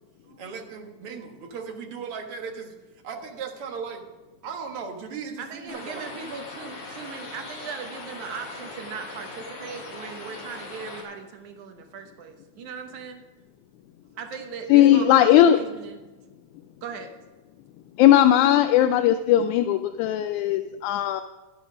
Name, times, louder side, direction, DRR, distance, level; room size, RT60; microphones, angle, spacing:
voice 1, 0.4-2.7 3.0-4.1 4.4-6.1, right 6 dB, 55° right, 3 dB, 2.1 m, -37 dB
voice 2, 5.4-13.2 14.1-16.0 16.8-17.1, right 6 dB, 80° right, 4 dB, 2.5 m, -38 dB
sound 1, 5.7-11.0, left 2 dB, 65° left, 3.6 m, -40 dB
voice 3, 14.7-15.6 18.0-21.2, left 12 dB, 85° left, 10 dB, 2.0 m, -18 dB
11.5 x 9.7 x 5.1 m, 1.2 s
omnidirectional pair, 3.4 m